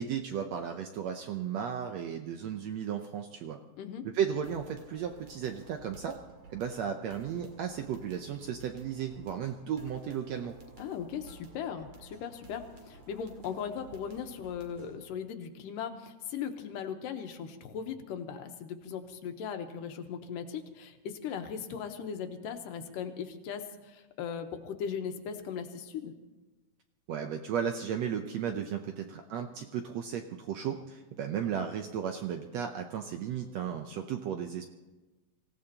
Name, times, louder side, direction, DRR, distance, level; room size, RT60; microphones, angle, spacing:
voice 1, 0.0-3.6 4.1-6.2 6.5-10.5 27.1-34.7, right 8 dB, 75° right, 5 dB, 1.6 m, -34 dB
sound 1, 4.4-15.1, right 4 dB, 50° right, 2.8 m, -54 dB
voice 2, 10.8-26.1, left 7 dB, 90° left, 6 dB, 2.6 m, -38 dB
25.5 x 16.0 x 2.9 m, 1.1 s
omnidirectional pair, 3.8 m